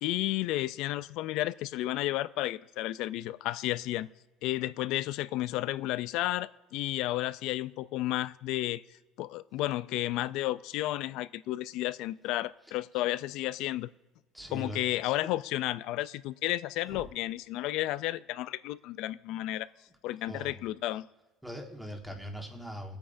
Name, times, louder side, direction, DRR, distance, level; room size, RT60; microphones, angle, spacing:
voice 1, 0.0-4.1 4.4-8.8 9.2-13.9 14.5-19.7 20.0-21.1, left 16 dB, 60° left, 17 dB, 0.3 m, -32 dB
voice 2, 14.3-15.0 16.9-17.0 20.3-20.5 21.4-23.0, equal, ahead, 2 dB, 1.4 m, -41 dB
23.0 x 8.7 x 2.6 m, 1.1 s
cardioid pair, 165°, 0 cm